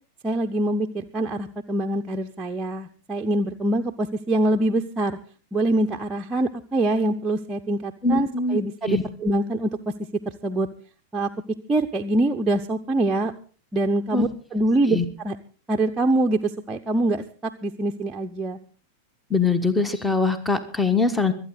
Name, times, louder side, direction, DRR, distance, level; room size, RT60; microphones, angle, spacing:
voice 1, 0.2-5.2 5.5-9.9 10.3-10.7 11.1-11.3 11.7-13.3 13.7-15.4 15.7-18.6, right 2 dB, 15° right, 2 dB, 0.8 m, -24 dB
voice 2, 8.0-8.6 8.9-9.0 14.1-14.3 14.9-15.0 19.3-21.3, left 4 dB, 5° left, 13 dB, 1.3 m, -22 dB
25.0 x 9.1 x 4.0 m, 0.40 s
figure-of-eight pair, 90°, 0 cm